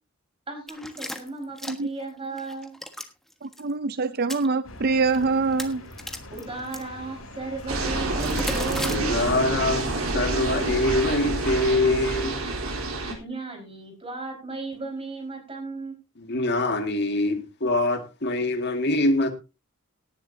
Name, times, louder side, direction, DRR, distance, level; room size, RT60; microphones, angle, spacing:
voice 1, 0.5-2.8 6.3-9.2 13.2-16.0, right 3 dB, 25° right, 4.9 m, -35 dB
sound 1, 0.7-2.1 2.4-3.1 3.4-3.6 4.1-4.5 5.1-5.2 5.5-6.8 8.2-9.0, left 1 dB, ahead, 1.4 m, -35 dB
voice 2, 3.4-5.9, right 4 dB, 50° right, 0.5 m, -25 dB
sound 2, 4.6-11.8, left 1 dB, 75° left, 6.7 m, -42 dB
sound 3, 7.7-13.1, right 2 dB, 85° right, 3.5 m, -28 dB
voice 3, 8.9-9.8 10.1-12.4 16.2-19.3, left 2 dB, 55° left, 2.0 m, -24 dB
18.0 x 10.5 x 2.7 m
head